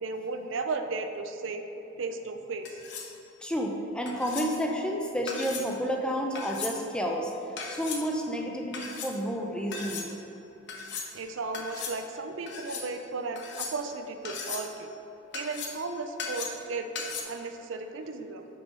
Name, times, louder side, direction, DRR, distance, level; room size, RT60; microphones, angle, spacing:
voice 1, 0.0-1.6 2.0-2.8 11.1-14.9 15.3-16.9 17.2-18.5, right 3 dB, 65° right, 7 dB, 0.5 m, -35 dB
sound 1, 2.6-3.1 4.1-4.5 5.3-5.7 6.3-6.8 7.6-8.0 8.7-9.1 9.7-10.1 10.7-11.1 11.5-12.0 12.5-12.9 13.3-13.9 14.2-14.7 15.3-15.8 16.2-16.6 16.9-17.2, left 5 dB, 55° left, 0.9 m, -37 dB
voice 2, 3.4-7.3 7.7-10.1, equal, 5° left, 1 dB, 0.4 m, -30 dB
6.2 x 5.4 x 4.7 m, 3.0 s
head